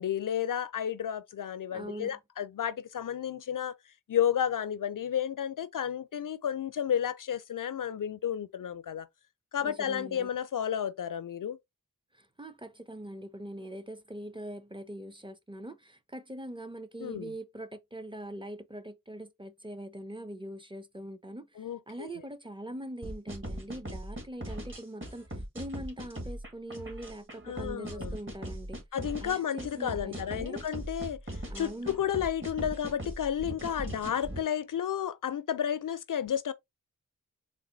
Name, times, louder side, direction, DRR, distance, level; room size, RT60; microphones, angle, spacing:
voice 1, 0.0-3.7 4.1-9.1 9.5-11.6 17.0-17.3 21.6-22.1 27.5-28.2 28.9-31.2 31.6-36.5, left 9 dB, 70° left, 0.5 m, -32 dB
voice 2, 1.7-2.2 9.6-10.3 12.1-28.8 29.2-30.6 31.5-31.9, right 1 dB, 15° right, 0.6 m, -42 dB
sound 1, 23.0-34.4, right 1 dB, 35° right, 1.6 m, -40 dB
4.0 x 2.1 x 3.8 m
wide cardioid pair, 45°, 34 cm